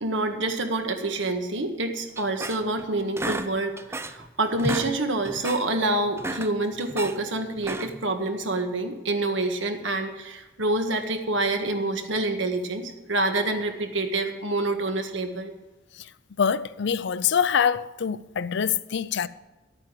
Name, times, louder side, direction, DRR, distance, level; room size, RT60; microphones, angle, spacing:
voice 1, 0.0-15.5, right 2 dB, 70° right, 1.8 m, -27 dB
sound 1, 2.2-2.8 3.2-4.3 4.5-4.9 5.3-5.7 6.1-7.2 7.6-8.1, right 2 dB, 15° right, 0.7 m, -32 dB
voice 2, 16.4-19.3, left 7 dB, 65° left, 0.5 m, -24 dB
12.0 x 9.0 x 7.7 m
head